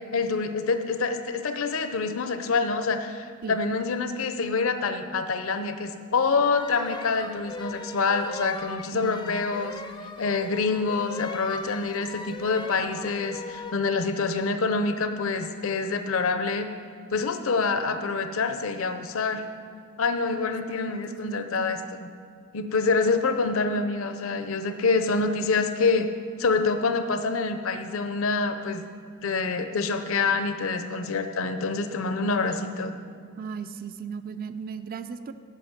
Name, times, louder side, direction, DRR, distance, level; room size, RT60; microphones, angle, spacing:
voice 1, 0.1-9.7 10.2-16.7 17.1-19.5 20.0-22.1 22.5-26.1 26.4-28.8 29.2-32.9, left 4 dB, 65° left, 8 dB, 0.6 m, -26 dB
sound 1, 6.3-13.8, left 3 dB, 20° left, 0.4 m, -39 dB
voice 2, 8.9-9.5 20.4-21.7 33.4-35.3, right 6 dB, 40° right, 10 dB, 0.4 m, -37 dB
11.0 x 5.8 x 7.3 m, 2.2 s
head